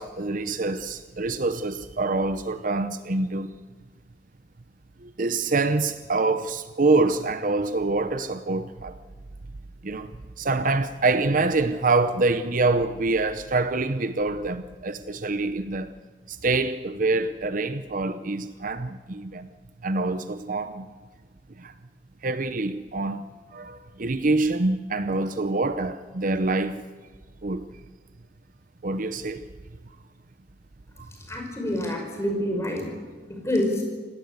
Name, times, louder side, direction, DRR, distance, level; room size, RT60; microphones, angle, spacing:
voice 1, 0.0-3.5 5.0-9.0 9.8-15.9 16.3-19.5 19.8-20.9 21.6-21.7 22.2-23.3 23.5-26.8 27.4-27.7 28.8-29.4, right 3 dB, 45° right, 0.8 m, -25 dB
voice 2, 31.3-32.9 33.3-33.8, left 1 dB, 15° left, 5.2 m, -27 dB
27.5 x 18.0 x 8.2 m
head